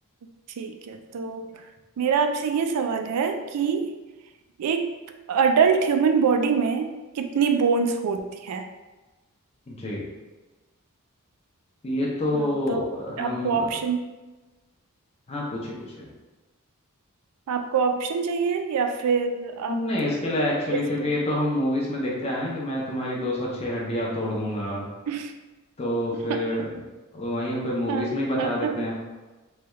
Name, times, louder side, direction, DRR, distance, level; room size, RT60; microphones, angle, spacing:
voice 1, 0.6-1.5 2.0-3.9 4.6-4.9 5.3-8.7 12.3-12.8 13.2-14.1 17.5-19.8 25.1-25.3 26.3-26.4 27.9-28.1 28.4-28.8, right 5 dB, 85° right, 6 dB, 0.3 m, -24 dB
voice 2, 9.7-10.0 11.8-13.7 15.3-16.1 19.7-24.9 25.8-26.8 27.1-29.0, left 1 dB, 25° left, -4 dB, 0.5 m, -27 dB
3.2 x 2.3 x 3.0 m, 1.2 s
head